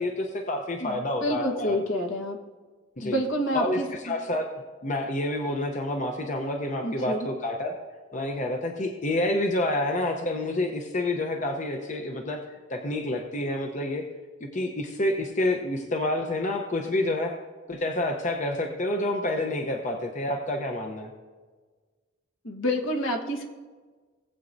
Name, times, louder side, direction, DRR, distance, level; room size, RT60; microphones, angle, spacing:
voice 1, 0.0-1.8 3.0-3.2 3.5-4.5 4.8-7.7 8.1-12.4 12.7-14.0 14.4-17.3 17.7-21.1, left 1 dB, 40° left, 3 dB, 0.8 m, -28 dB
voice 2, 0.8-2.4 3.0-4.1 6.8-7.3 22.4-23.4, equal, 70° left, 2 dB, 1.3 m, -28 dB
18.5 x 8.1 x 2.6 m, 1.4 s
head